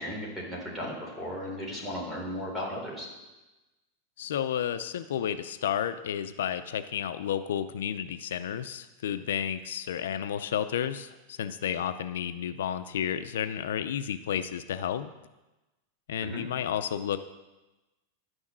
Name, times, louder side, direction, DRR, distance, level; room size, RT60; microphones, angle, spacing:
voice 1, 0.0-3.1 16.2-16.4, equal, 5° right, -3 dB, 3.7 m, -36 dB
voice 2, 4.2-15.1 16.1-17.2, left 9 dB, 85° left, 10 dB, 0.6 m, -31 dB
11.5 x 6.3 x 7.4 m, 1.1 s
supercardioid pair, 150°, 0 cm